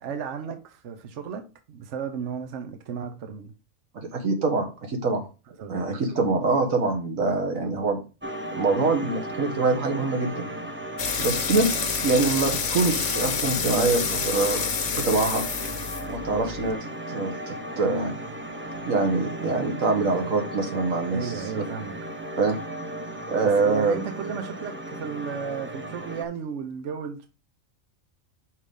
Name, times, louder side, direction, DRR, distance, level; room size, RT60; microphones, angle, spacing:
voice 1, 0.0-3.5 5.5-5.7 21.1-21.9 23.4-27.3, right 7 dB, 65° right, 1.1 m, -34 dB
voice 2, 4.1-5.2 5.7-8.0 8.5-10.5 11.2-14.6 14.9-15.4 16.1-16.8 17.1-18.1 18.9-21.6 22.4-22.6 23.3-24.0, right 3 dB, 90° right, 1.8 m, -24 dB
sound 1, 8.2-26.3, right 1 dB, 15° right, 0.4 m, -36 dB
sound 2, 11.0-16.7, left 6 dB, 60° left, 1.1 m, -28 dB
5.5 x 4.9 x 5.3 m
omnidirectional pair, 1.4 m